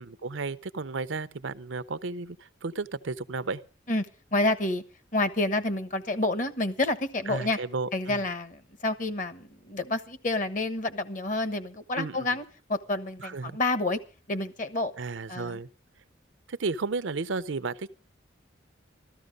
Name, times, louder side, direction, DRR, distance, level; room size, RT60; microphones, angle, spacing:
voice 1, 0.0-3.6 7.3-8.2 11.9-12.3 13.2-13.6 15.0-15.7 16.5-17.9, right 4 dB, 80° right, 0.7 m, -33 dB
voice 2, 4.3-4.8 5.1-7.6 7.9-12.4 12.7-14.0 14.3-14.9 15.3-15.6, left 2 dB, 40° left, 1.2 m, -29 dB
14.0 x 14.0 x 5.3 m
head